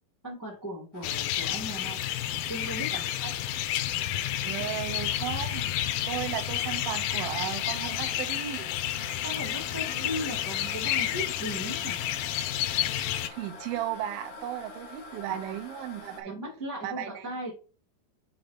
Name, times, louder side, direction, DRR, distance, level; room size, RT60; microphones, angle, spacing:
voice 1, 0.2-2.0 2.5-3.0 9.2-11.9 15.3-15.6 16.2-17.5, equal, 5° left, 1.7 m, -37 dB
sound 1, 0.9-16.2, left 3 dB, 65° left, 1.4 m, -47 dB
sound 2, 1.0-13.3, left 12 dB, 80° left, 2.3 m, -30 dB
voice 2, 4.4-5.7 6.1-8.7 13.3-16.3 16.8-17.3, right 11 dB, 80° right, 2.7 m, -35 dB
5.5 x 5.3 x 4.3 m
omnidirectional pair, 4.3 m